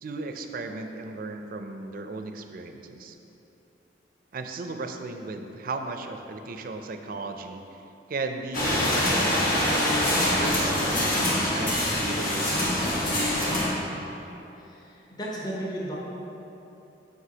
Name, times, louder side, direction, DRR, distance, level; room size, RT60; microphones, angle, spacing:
voice 1, 0.0-3.2 4.3-7.8 8.1-9.9 10.3-12.8, right 3 dB, 50° right, 6 dB, 0.4 m, -36 dB
sound 1, 8.5-13.7, left 1 dB, 45° left, 1.2 m, -24 dB
voice 2, 14.5-15.9, right 1 dB, 20° left, -5 dB, 0.8 m, -34 dB
7.9 x 5.4 x 2.8 m, 3.0 s
head